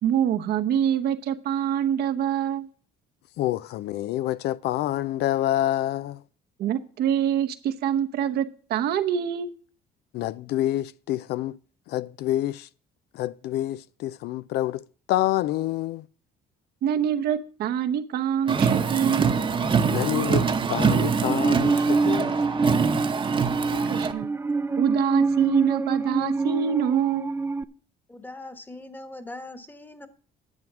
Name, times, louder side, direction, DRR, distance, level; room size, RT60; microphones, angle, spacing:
voice 1, 0.0-2.7 6.6-9.5 16.8-19.4 23.7-24.3 24.8-27.5, right 9 dB, 70° right, 1.0 m, -25 dB
voice 2, 3.4-6.2 10.1-11.6 11.9-12.7 13.1-16.1 19.9-22.4, left 14 dB, 75° left, 0.4 m, -27 dB
Car, 18.5-24.1, right 6 dB, 30° right, 0.9 m, -24 dB
Musical instrument, 20.8-27.6, right 4 dB, 15° right, 0.5 m, -25 dB
voice 3, 28.1-30.1, left 2 dB, 10° left, 1.2 m, -41 dB
11.0 x 7.8 x 6.1 m
cardioid pair, 110°, 17 cm